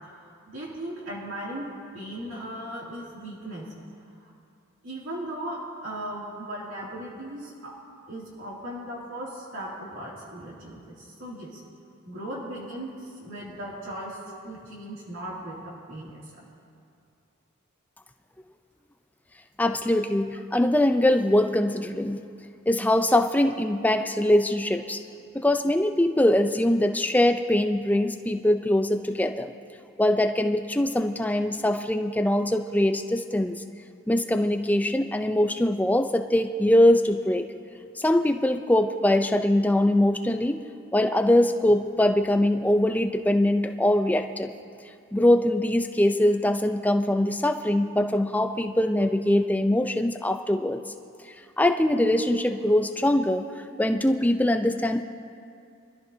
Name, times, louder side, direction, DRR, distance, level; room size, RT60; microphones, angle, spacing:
voice 1, 0.5-1.7 1.9-3.6 4.8-7.7 8.1-11.6 12.1-14.2 14.4-15.6 15.9-16.2, right 1 dB, 65° right, -6 dB, 2.7 m, -37 dB
voice 2, 19.6-22.2 22.7-25.0 25.3-29.6 30.0-33.6 34.1-37.5 38.0-40.6 40.9-44.5 45.1-50.8 51.6-53.5 53.8-55.0, left 1 dB, 10° left, 7 dB, 0.5 m, -22 dB
24.0 x 13.5 x 2.8 m, 2.4 s
head